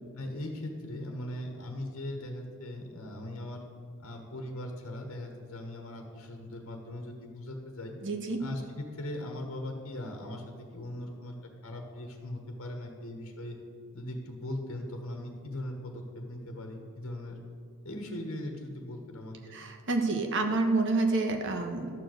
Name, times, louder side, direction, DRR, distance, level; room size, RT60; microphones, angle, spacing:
voice 1, 0.2-3.6 4.0-8.0 8.4-10.4 10.7-11.3 11.6-13.6 13.9-17.4 17.8-19.6, left 1 dB, 65° left, 3 dB, 1.4 m, -39 dB
voice 2, 8.0-8.4 19.5-21.9, right 3 dB, 60° right, 5 dB, 1.2 m, -28 dB
12.0 x 4.6 x 7.9 m, 2.2 s
head